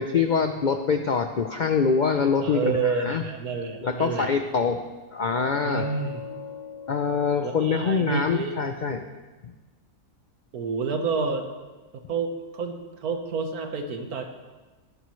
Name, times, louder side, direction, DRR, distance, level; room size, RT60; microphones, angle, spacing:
voice 1, 0.0-3.2 3.8-4.8 5.1-5.9 6.9-9.1 9.4-9.5, left 5 dB, 70° left, 6 dB, 0.4 m, -24 dB
voice 2, 2.4-4.3 5.6-6.2 7.4-8.5 10.5-11.5 11.9-14.2, right 4 dB, 85° right, 5 dB, 1.7 m, -29 dB
sound 1, 5.1-8.7, left 6 dB, 40° right, 3.6 m, -40 dB
17.5 x 11.5 x 3.2 m, 1.2 s
omnidirectional pair, 1.6 m